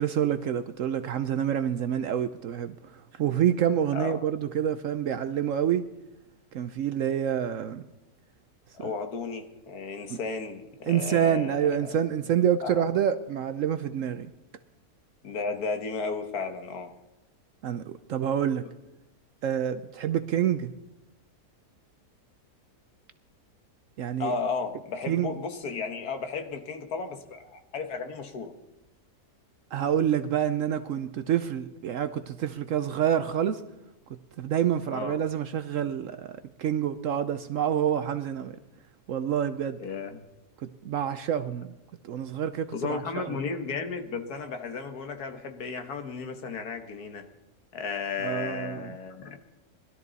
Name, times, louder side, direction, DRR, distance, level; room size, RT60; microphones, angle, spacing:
voice 1, 0.0-5.9 6.5-7.8 8.8-8.9 10.1-10.2 10.9-14.3 17.6-18.6 19.4-20.7 24.0-24.3 25.1-25.3 29.7-33.6 34.4-38.6 39.1-39.8 40.6-41.7 42.0-43.4 48.2-49.0, right 9 dB, 65° right, 0.9 m, -27 dB
voice 2, 8.7-11.5 11.8-12.0 12.6-12.9 15.2-16.9 24.2-28.5 34.9-35.2 39.8-40.2 42.7-47.3 47.7-49.4, left 5 dB, 90° left, 1.9 m, -34 dB
20.0 x 12.5 x 4.0 m
omnidirectional pair, 1.6 m